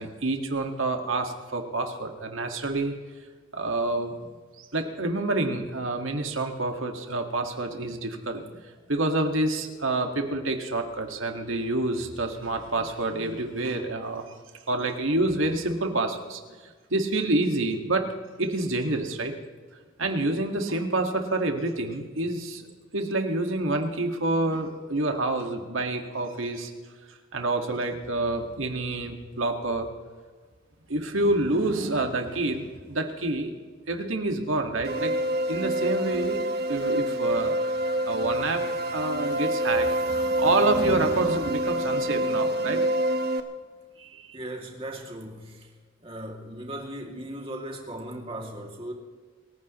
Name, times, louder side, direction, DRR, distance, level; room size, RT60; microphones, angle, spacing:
voice 1, 0.0-2.9 3.5-4.1 4.7-14.3 14.7-16.6 16.9-18.1 18.4-19.3 20.0-22.7 22.9-26.7 27.1-29.9 30.9-33.5 33.9-35.1 35.5-36.4 36.7-37.6 38.0-38.6 38.9-42.8 44.0-44.4, right 2 dB, 90° right, 1.9 m, -28 dB
sound 1, 34.8-43.4, right 1 dB, 50° right, 1.2 m, -26 dB
voice 2, 44.3-45.7 46.0-48.9, right 1 dB, 30° right, 2.6 m, -37 dB
29.0 x 15.0 x 3.1 m
head